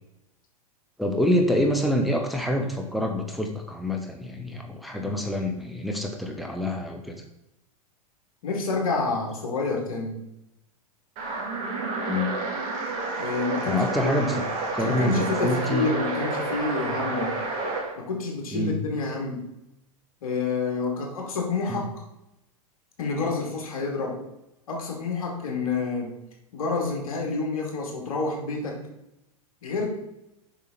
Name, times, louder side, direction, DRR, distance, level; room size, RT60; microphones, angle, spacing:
voice 1, 1.0-7.2 12.0-12.4 13.1-13.2 13.6-14.3 14.7-15.9 18.5-18.9 21.7-21.9, left 1 dB, ahead, 3 dB, 1.0 m, -26 dB
voice 2, 8.4-10.2 13.2-14.3 14.8-17.4 18.0-19.5 20.2-22.0 23.0-24.2 24.7-26.2 26.5-28.8 29.6-29.9, left 3 dB, 70° left, 0 dB, 2.5 m, -28 dB
sound 1, 11.2-17.9, right 3 dB, 50° right, 3.0 m, -30 dB
7.5 x 5.9 x 4.1 m, 0.90 s
hypercardioid pair, 100°, 19 cm